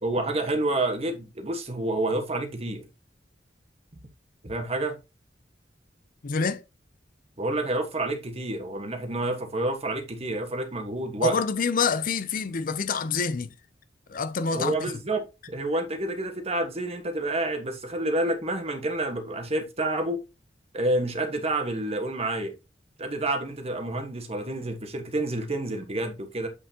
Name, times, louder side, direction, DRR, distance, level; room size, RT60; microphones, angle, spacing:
voice 1, 0.0-2.8 4.4-4.9 7.4-11.3 14.5-20.2 20.7-22.5 23.0-26.5, right 2 dB, 35° right, 1.4 m, -29 dB
voice 2, 6.2-6.6 11.2-13.5 14.1-14.9, left 5 dB, 50° left, 0.5 m, -27 dB
8.1 x 5.8 x 2.9 m
head